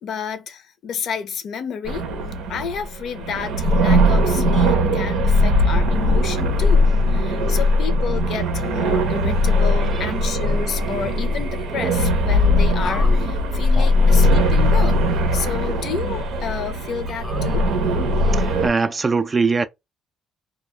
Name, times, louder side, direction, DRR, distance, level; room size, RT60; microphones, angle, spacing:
voice 1, 0.0-2.1 2.5-17.7, left 7 dB, 65° left, 0.5 m, -30 dB
sound 1, 1.9-18.7, left 1 dB, 90° right, 0.7 m, -19 dB
sound 2, 10.4-11.9 12.8-13.2 13.7-13.9 14.5-15.8 16.3-16.4 17.1-18.0, left 1 dB, 5° left, 0.7 m, -38 dB
voice 2, 18.3-19.7, right 4 dB, 25° right, 0.3 m, -21 dB
2.3 x 2.1 x 2.9 m
cardioid pair, 110°, 0 cm